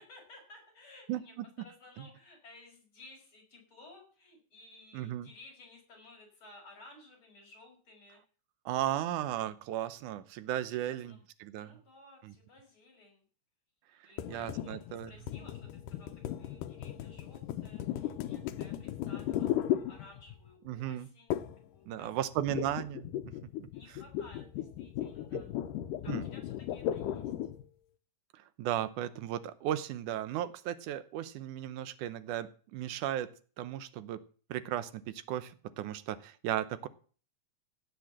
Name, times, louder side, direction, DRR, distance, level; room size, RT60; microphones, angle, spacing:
voice 1, 0.0-1.3 1.6-8.2 10.7-11.2 11.6-13.2 14.0-14.8 15.1-16.1 16.4-22.1 22.5-22.6 23.7-25.5 26.0-27.3, left 2 dB, 40° left, 0 dB, 6.3 m, -56 dB
voice 2, 1.1-1.5 2.0-2.1 4.9-5.3 8.7-11.8 12.2-12.3 14.0-15.1 20.7-21.1 21.9-23.1 25.3-25.4 26.1-26.2 28.3-33.3 33.6-34.2 34.5-36.9, right 12 dB, 75° right, 14 dB, 2.3 m, -36 dB
sound 1, 14.2-20.5 21.3-21.7 21.9-27.6, left 11 dB, 85° left, 2.4 m, -36 dB
16.5 x 6.2 x 7.4 m, 0.40 s
omnidirectional pair, 3.7 m